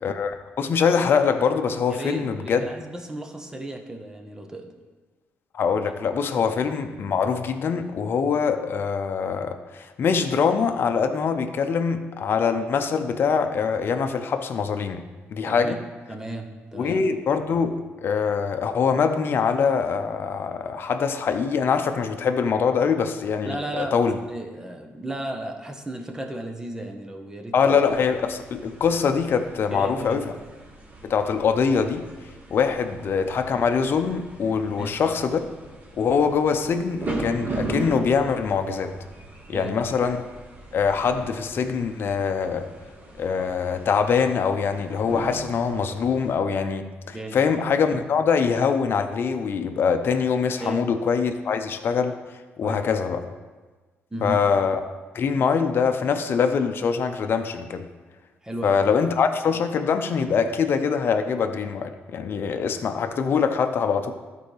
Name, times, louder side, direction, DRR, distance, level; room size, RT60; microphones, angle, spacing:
voice 1, 0.0-2.6 5.5-15.8 16.7-24.2 27.5-30.3 31.0-32.1 32.5-35.5 35.9-38.9 39.5-40.3 40.7-42.7 43.2-52.2 52.6-53.3 54.2-54.8 55.1-57.9 58.6-64.1, left 6 dB, 55° left, 7 dB, 0.7 m, -23 dB
voice 2, 1.9-4.7 15.4-15.7 16.1-17.0 23.4-27.7 29.7-30.2 34.8-34.9 39.5-39.8 47.1-47.4 50.6-50.8 52.6-52.8 54.1-54.4 58.4-58.8, right 1 dB, 15° right, 3 dB, 1.1 m, -34 dB
sound 1, 27.8-46.3, right 2 dB, 40° right, 1.7 m, -39 dB
13.0 x 4.5 x 3.4 m, 1.3 s
cardioid pair, 90°, 5 cm